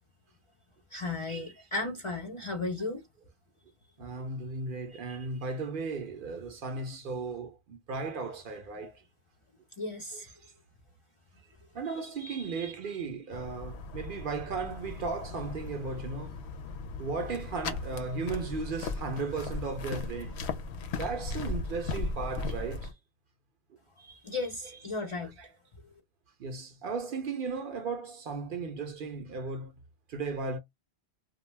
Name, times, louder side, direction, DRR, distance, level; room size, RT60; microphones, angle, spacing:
voice 1, 0.9-3.0 4.9-5.2 9.8-10.3 11.8-12.7 24.0-25.3, left 2 dB, 40° left, 0.5 m, -36 dB
voice 2, 4.0-8.9 11.7-16.3 17.0-20.3 20.9-22.9 26.4-29.7 30.1-30.6, right 4 dB, 60° right, 0.7 m, -35 dB
sound 1, 13.3-22.9, left 3 dB, 80° left, 0.8 m, -37 dB
2.4 x 2.2 x 3.1 m
omnidirectional pair, 1.1 m